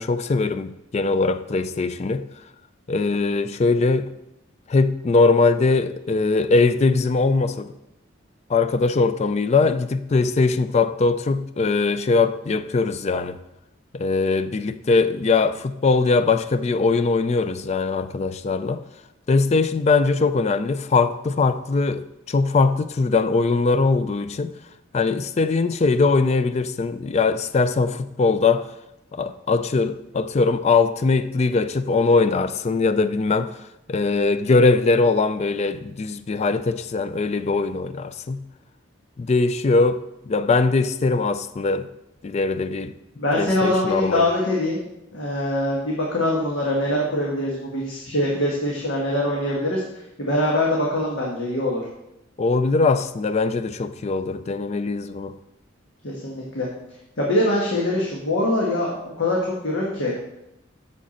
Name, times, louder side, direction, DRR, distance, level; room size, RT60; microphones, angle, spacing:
voice 1, 0.0-2.2 2.9-4.1 4.7-7.7 8.5-13.4 13.9-18.8 19.3-24.5 24.9-28.7 29.1-33.6 33.9-38.4 39.2-41.9 42.2-42.9 43.3-44.3 52.4-55.3, left 3 dB, 35° left, 0.3 m, -21 dB
voice 2, 43.2-44.8 45.1-49.8 50.2-51.8 56.0-56.7 57.2-60.2, left 1 dB, 80° left, 1.4 m, -23 dB
7.6 x 6.6 x 4.2 m
head